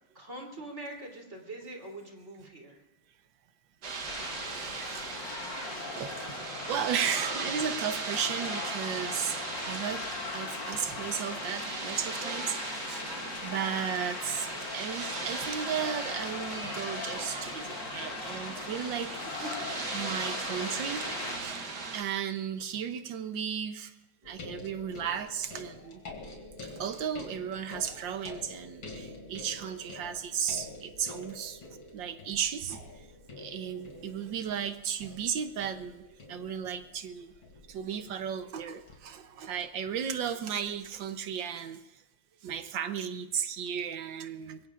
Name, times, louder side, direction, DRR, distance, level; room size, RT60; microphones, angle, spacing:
voice 1, 0.1-2.8 19.4-19.5, right 2 dB, 35° right, 1 dB, 3.6 m, -43 dB
sound 1, 3.8-22.0, right 4 dB, 60° right, 2.0 m, -38 dB
sound 2, 4.1-21.4, left 4 dB, 70° left, 2.4 m, -39 dB
voice 2, 4.4-5.2 6.0-6.1 6.7-9.4 9.6-10.1 10.3-13.0 13.4-19.6 19.9-21.6 21.9-23.9 24.2-26.0 26.6-31.6 31.9-32.8 33.4-37.3 37.7-41.8 42.4-44.6, right 8 dB, 75° right, 9 dB, 1.6 m, -35 dB
sound 3, 24.2-39.6 40.7-40.8, left 3 dB, 90° left, 3.3 m, -47 dB
25.0 x 22.0 x 2.5 m, 0.96 s
omnidirectional pair, 2.1 m